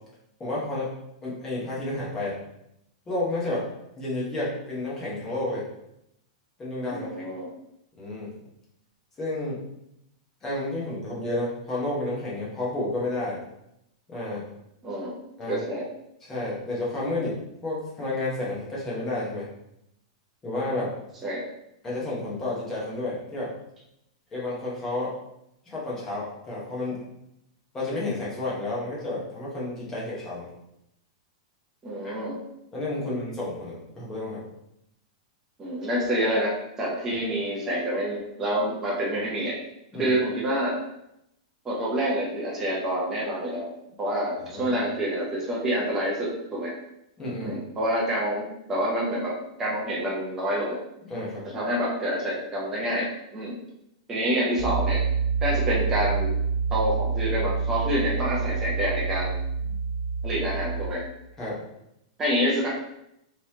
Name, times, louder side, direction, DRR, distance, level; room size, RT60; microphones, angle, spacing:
voice 1, 0.4-0.9 1.2-2.3 3.1-3.6 3.9-5.6 6.6-7.2 8.0-8.3 9.2-9.6 10.4-13.4 14.1-14.5 15.4-15.6 16.2-17.4 17.6-19.5 20.4-20.9 21.8-23.5 24.3-25.1 25.7-27.0 27.7-30.5 32.0-32.1 32.7-34.4 39.9-40.1 44.5-44.8 47.2-47.6 51.1-51.4 59.6-59.8 61.4-61.6, left 2 dB, 15° left, -6 dB, 1.1 m, -31 dB
voice 2, 6.9-7.5 14.8-15.1 15.5-15.8 21.2-21.4 31.8-32.4 33.0-33.1 35.6-36.5 36.8-39.5 40.0-40.8 41.6-43.7 44.0-46.7 47.4-49.3 49.6-50.8 51.5-53.6 54.1-55.0 55.4-56.3 56.7-59.4 60.2-61.0 62.2-62.7, equal, 15° right, -5 dB, 0.7 m, -27 dB
Piano, 54.6-60.9, right 5 dB, 80° right, 0.6 m, -27 dB
3.8 x 3.1 x 2.8 m, 0.82 s
supercardioid pair, 170°, 3 cm